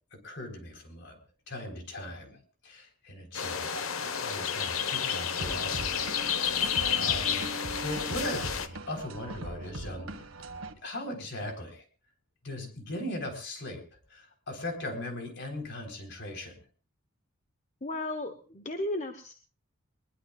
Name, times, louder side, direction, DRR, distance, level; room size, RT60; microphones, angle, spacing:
voice 1, 0.1-1.2 1.5-3.7 4.0-6.0 6.4-8.5 8.9-10.2 10.8-11.8 12.4-13.8 14.1-16.6, left 1 dB, 55° left, 3 dB, 4.0 m, -39 dB
sound 1, 3.3-8.7, left 8 dB, 75° left, 1.2 m, -30 dB
sound 2, 5.4-10.7, right 1 dB, 80° right, 1.7 m, -40 dB
voice 2, 17.8-19.3, left 1 dB, 35° left, 6 dB, 1.1 m, -34 dB
22.0 x 21.5 x 2.4 m, 0.37 s
head